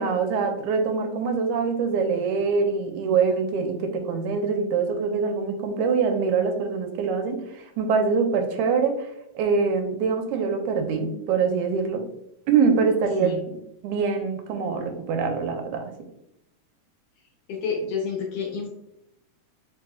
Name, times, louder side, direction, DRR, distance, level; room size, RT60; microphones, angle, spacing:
voice 1, 0.0-9.1 9.4-12.1 12.5-13.6 13.8-15.9, right 5 dB, 85° right, 5 dB, 2.0 m, -24 dB
voice 2, 17.5-18.7, left 5 dB, 70° left, 0 dB, 1.6 m, -29 dB
4.8 x 4.5 x 2.3 m, 0.79 s
omnidirectional pair, 3.4 m